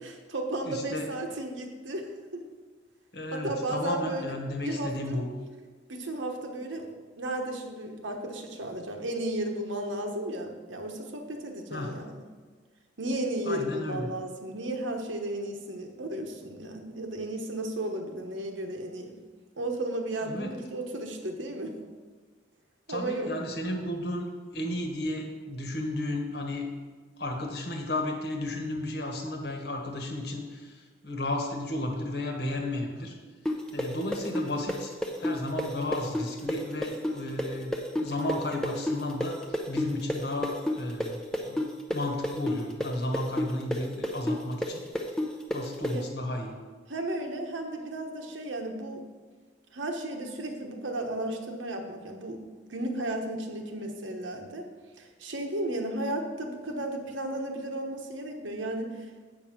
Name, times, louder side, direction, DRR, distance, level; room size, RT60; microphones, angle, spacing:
voice 1, 0.0-2.4 3.3-4.3 4.6-5.2 5.9-6.9 7.2-12.2 13.0-19.1 19.6-21.8 22.9-23.3 45.9-46.0 46.9-49.0 49.7-52.4 52.7-54.7 55.0-59.1, right 1 dB, 80° right, 3 dB, 1.2 m, -34 dB
voice 2, 0.6-1.1 3.1-5.2 11.7-11.9 13.5-14.1 20.2-20.5 22.9-24.3 24.5-26.7 27.2-33.1 33.7-44.8 45.5-46.5, left 1 dB, 55° left, 2 dB, 1.3 m, -33 dB
sound 1, 33.5-41.1 41.3-45.9, left 1 dB, 5° left, 0.6 m, -29 dB
8.3 x 5.4 x 6.1 m, 1.4 s
head